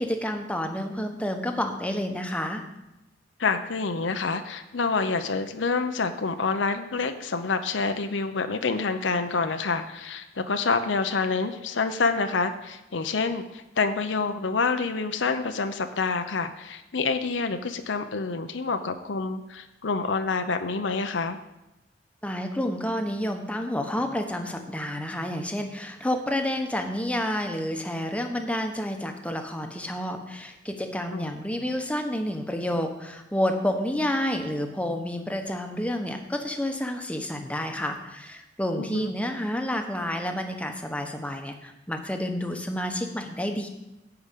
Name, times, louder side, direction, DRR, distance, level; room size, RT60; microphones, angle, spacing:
voice 1, 0.0-2.6 22.2-43.7, left 1 dB, 5° left, 4 dB, 1.0 m, -29 dB
voice 2, 3.4-21.4 31.1-31.4 38.8-39.1, left 4 dB, 85° left, 8 dB, 0.7 m, -27 dB
10.5 x 5.0 x 8.3 m, 0.95 s
head